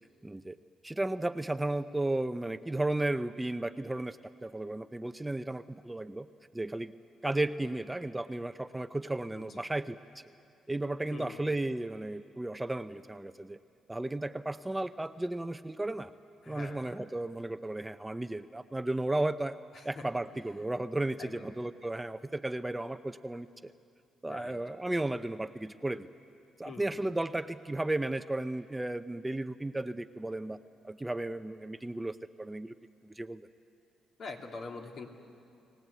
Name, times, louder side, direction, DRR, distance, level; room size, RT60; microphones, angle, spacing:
voice 1, 0.2-0.6 0.8-6.3 6.5-6.9 7.2-10.0 10.7-13.6 13.9-16.1 16.5-19.6 19.8-23.7 24.2-26.1 26.6-30.6 30.8-32.7 33.0-33.5, right 2 dB, 10° right, 10 dB, 0.6 m, -34 dB
voice 2, 9.3-9.6 11.1-11.5 16.4-17.0 19.7-20.0 21.2-21.5 24.3-24.6 26.6-27.0 34.2-35.1, left 3 dB, 60° left, 1 dB, 2.7 m, -45 dB
29.5 x 18.5 x 8.2 m, 2.5 s
cardioid pair, 90°, 0 cm